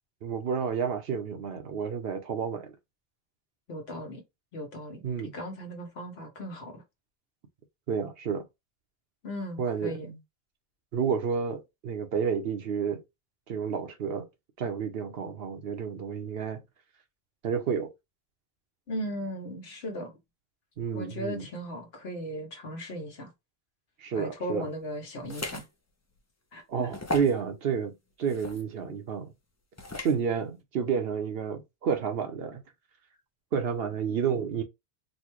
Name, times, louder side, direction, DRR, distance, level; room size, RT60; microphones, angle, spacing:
voice 1, 0.2-2.7 5.0-5.3 7.9-8.4 9.6-10.2 10.9-13.0 13.5-14.3 14.6-16.6 17.4-17.9 20.8-21.4 24.0-24.7 26.7-29.3 30.0-32.6 33.5-34.6, right 6 dB, 65° right, 1.0 m, -30 dB
voice 2, 3.7-4.2 4.5-5.0 5.3-6.8 9.2-10.1 18.9-20.2 20.9-23.3 24.2-25.6 26.5-26.9, equal, 70° left, 1.3 m, -37 dB
sound 1, 25.3-25.7 26.2-26.3 26.9-27.4 28.3-28.6 29.8-30.2, left 2 dB, 25° left, 0.3 m, -35 dB
4.2 x 2.2 x 3.0 m
omnidirectional pair, 1.1 m